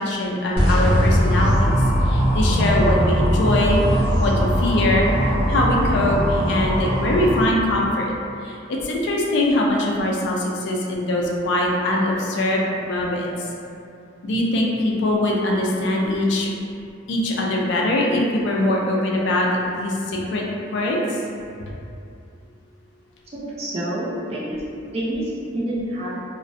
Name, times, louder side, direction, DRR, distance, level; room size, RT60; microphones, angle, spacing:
voice 1, 0.0-5.1 5.5-8.1 8.4-13.5 14.2-16.5 17.1-19.5 19.8-20.5 20.7-21.0, left 1 dB, 60° left, -2 dB, 0.3 m, -22 dB
sound 1, 0.6-7.4, equal, 10° left, 0.6 m, -20 dB
voice 2, 23.3-24.6 24.9-26.2, right 1 dB, 30° right, -7 dB, 0.4 m, -27 dB
2.4 x 2.1 x 2.5 m, 2.5 s
head